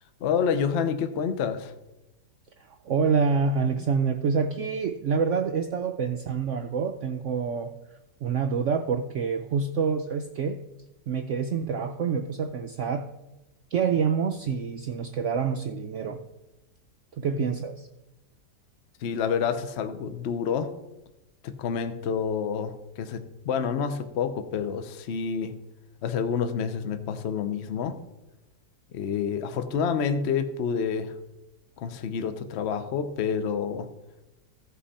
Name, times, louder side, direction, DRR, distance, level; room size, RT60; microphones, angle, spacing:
voice 1, 0.2-1.7 19.0-20.7 21.4-25.5 26.0-28.0 28.9-31.1 31.8-33.9, left 6 dB, 55° left, 9 dB, 0.8 m, -28 dB
voice 2, 2.6-7.7 8.2-10.6 11.1-13.1 13.7-16.2 17.2-17.9, right 6 dB, 75° right, 7 dB, 0.6 m, -27 dB
15.0 x 5.6 x 4.2 m, 0.98 s
omnidirectional pair, 1.8 m